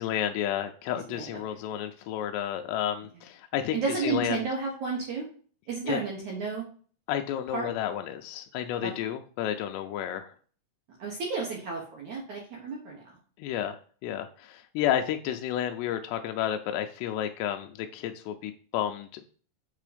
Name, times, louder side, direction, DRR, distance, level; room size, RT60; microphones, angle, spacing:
voice 1, 0.0-4.4 5.9-6.0 7.1-10.3 13.4-19.2, left 10 dB, 85° left, 5 dB, 2.5 m, -31 dB
voice 2, 3.7-5.2 5.7-6.6 7.5-7.7 11.0-13.0, right 4 dB, 75° right, -2 dB, 1.7 m, -32 dB
7.6 x 3.6 x 5.0 m, 0.43 s
omnidirectional pair, 5.4 m